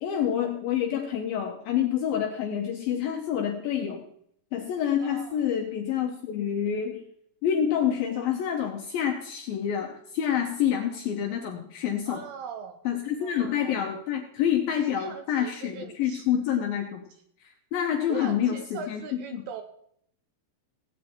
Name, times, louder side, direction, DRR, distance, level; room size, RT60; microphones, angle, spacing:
voice 1, 0.0-4.0 4.5-7.0 7.4-12.2 12.9-17.0 17.4-19.4, left 9 dB, 75° left, 3 dB, 2.2 m, -28 dB
voice 2, 5.0-5.4 12.1-12.8 13.2-13.8 14.8-16.2 18.1-19.6, right 6 dB, 80° right, 7 dB, 2.4 m, -40 dB
17.0 x 8.6 x 4.5 m, 0.69 s
omnidirectional pair, 5.2 m